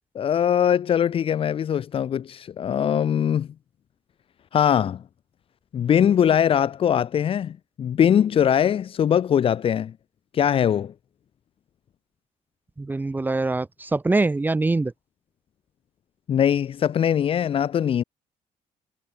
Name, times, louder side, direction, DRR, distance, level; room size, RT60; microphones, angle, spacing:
voice 1, 0.1-3.5 4.5-5.0 5.7-9.9 10.3-10.9 16.3-18.0, left 9 dB, 45° left, 1.2 m, -21 dB
voice 2, 12.8-14.9, right 3 dB, 15° right, 1.6 m, -23 dB
cardioid pair, 130°, 13 cm